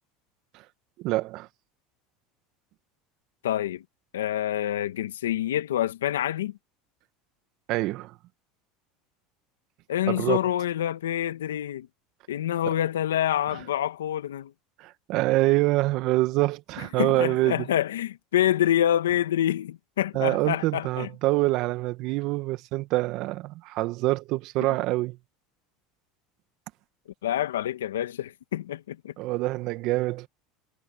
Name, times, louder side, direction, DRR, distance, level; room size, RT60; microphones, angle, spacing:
voice 1, 1.0-1.5 7.7-8.1 10.1-10.4 14.8-17.7 20.1-25.2 29.2-30.3, right 19 dB, 60° right, 1.8 m, -25 dB
voice 2, 3.4-3.8 4.1-6.5 9.9-11.9 12.3-14.5 17.0-21.1 27.2-29.1, left 11 dB, 90° left, 2.0 m, -27 dB
hypercardioid pair, 95°, 0 cm